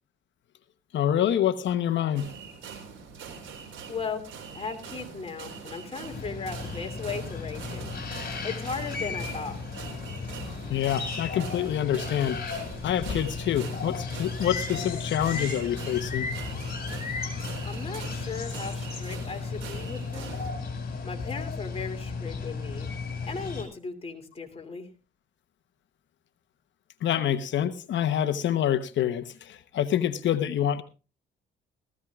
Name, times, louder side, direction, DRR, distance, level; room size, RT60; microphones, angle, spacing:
voice 1, 0.9-2.3 10.7-12.4 12.8-16.3 27.0-30.8, left 10 dB, 70° left, 11 dB, 1.0 m, -26 dB
sound 1, 2.2-20.5, right 5 dB, 75° right, 4.1 m, -43 dB
voice 2, 3.9-4.3 4.5-7.9 8.4-9.6 17.6-20.4 21.0-22.9 23.3-24.9, left 4 dB, 30° left, 3 dB, 2.9 m, -37 dB
sound 2, 6.1-23.6, left 4 dB, 50° left, 4.7 m, -35 dB
19.0 x 14.5 x 2.4 m, 0.32 s
cardioid pair, 90°, 20 cm